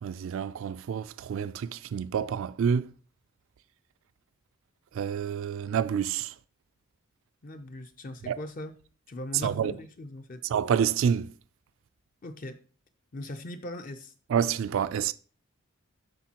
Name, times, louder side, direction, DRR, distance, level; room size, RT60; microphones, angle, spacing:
voice 1, 0.0-2.9 4.9-6.3 8.3-8.4 9.4-9.7 10.5-11.3 14.3-15.1, right 7 dB, 65° right, 0.3 m, -28 dB
voice 2, 7.4-8.7 9.1-10.4 12.2-12.6 13.1-14.1, left 1 dB, 40° left, 0.5 m, -40 dB
12.0 x 4.3 x 2.9 m
head